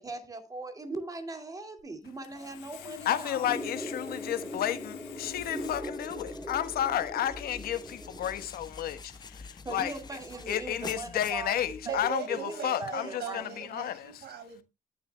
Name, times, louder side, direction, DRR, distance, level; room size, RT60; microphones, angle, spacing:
voice 1, 0.0-3.5 9.6-11.6 11.9-12.0 12.3-13.4, right 2 dB, 20° right, 2.2 m, -39 dB
Sawing, 1.8-1.9 2.2-5.8, left 10 dB, 85° left, 1.9 m, -44 dB
voice 2, 3.0-9.9 10.5-14.1, left 11 dB, 65° left, 1.2 m, -32 dB
sound 1, 3.5-8.5, equal, 5° right, 2.0 m, -41 dB
sound 2, 5.1-12.1, left 4 dB, 25° left, 0.7 m, -47 dB
voice 3, 11.8-14.6, right 9 dB, 70° right, 5.4 m, -39 dB
19.5 x 6.8 x 2.2 m
cardioid pair, 110°, 17 cm